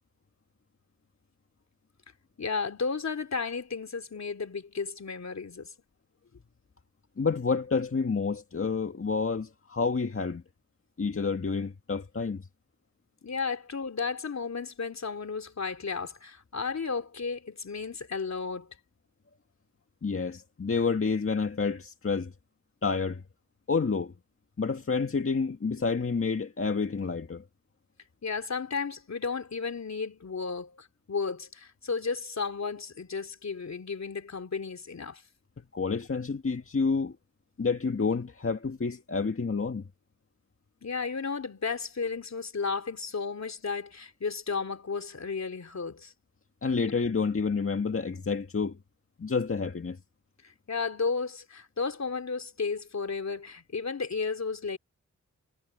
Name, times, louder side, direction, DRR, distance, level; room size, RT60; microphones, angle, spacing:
voice 1, 2.4-5.7 13.2-18.7 28.2-35.2 40.8-46.1 50.4-54.8, left 5 dB, 60° left, 3.3 m, -33 dB
voice 2, 7.2-10.4 11.0-12.5 20.0-22.3 22.8-23.2 23.7-24.1 24.6-27.4 35.7-37.2 37.6-39.8 46.6-48.8 49.2-50.0, left 4 dB, 45° left, 1.9 m, -29 dB
cardioid pair, 55°, 30 cm